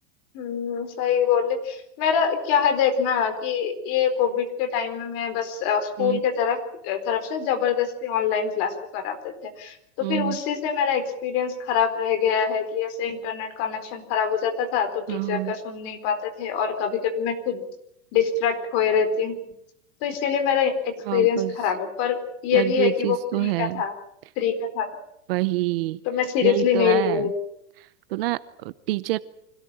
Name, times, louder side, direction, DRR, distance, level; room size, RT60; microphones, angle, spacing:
voice 1, 0.3-6.6 6.8-17.6 18.1-19.4 20.0-22.2 22.4-23.9 24.4-24.9 26.1-27.3, left 7 dB, 35° left, 7 dB, 4.3 m, -24 dB
voice 2, 10.0-10.4 15.1-15.5 21.1-21.5 22.5-23.8 25.3-26.0 26.4-27.3 27.8-29.2, right 19 dB, 45° right, 16 dB, 0.8 m, -27 dB
25.5 x 17.5 x 8.9 m, 0.77 s
supercardioid pair, 165°, 40 cm